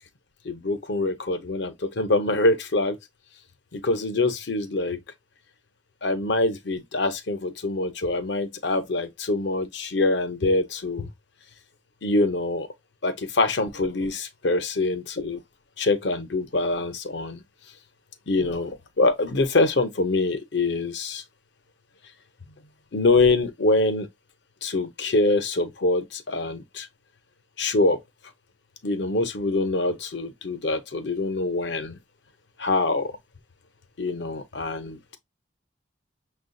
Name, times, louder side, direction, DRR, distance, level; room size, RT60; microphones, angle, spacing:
voice 1, 0.4-3.0 3.7-5.0 6.0-11.1 12.0-12.7 13.0-15.4 15.8-17.4 18.3-21.2 22.9-24.1 24.6-26.9 27.6-28.0 28.8-32.0 32.6-33.1 34.0-35.2, left 2 dB, 65° left, 0.7 m, -24 dB
6.2 x 2.3 x 2.6 m
head